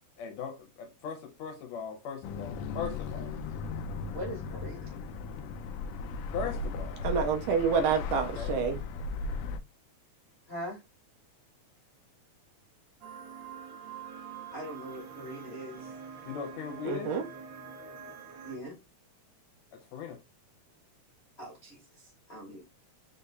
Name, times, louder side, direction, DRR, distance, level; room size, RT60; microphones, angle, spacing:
voice 1, 0.2-3.3 6.3-7.1 8.1-8.5 16.3-17.2 19.7-20.2, left 6 dB, 75° left, 1.8 m, -39 dB
sound 1, 2.2-9.6, left 4 dB, 90° left, 1.4 m, -37 dB
voice 2, 4.1-4.9 10.5-10.8 14.5-15.9 18.4-18.8 21.4-22.6, equal, 35° left, 1.1 m, -41 dB
voice 3, 7.0-8.8 16.8-17.2, right 6 dB, 75° right, 1.5 m, -28 dB
sound 2, 13.0-18.6, right 6 dB, 90° right, 1.0 m, -45 dB
5.4 x 3.7 x 2.3 m
omnidirectional pair, 3.4 m